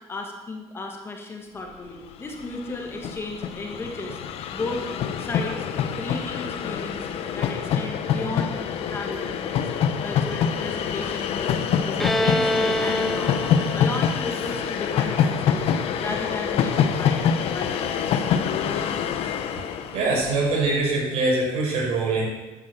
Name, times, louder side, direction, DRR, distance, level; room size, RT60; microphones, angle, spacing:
voice 1, 0.1-4.2 4.5-4.9 5.2-5.7 6.0-7.1 7.3-8.6 8.9-9.7 10.0-15.6 16.0-18.3, left 2 dB, 20° left, 2 dB, 1.9 m, -34 dB
Train, 2.0-2.1 2.3-20.7, left 8 dB, 60° left, 1.2 m, -26 dB
Bowed string instrument, 12.0-15.5, equal, ahead, 0.3 m, -27 dB
voice 2, 19.9-22.3, right 3 dB, 65° right, -1 dB, 5.3 m, -23 dB
12.0 x 9.6 x 7.0 m, 1.2 s
cardioid pair, 140°, 11 cm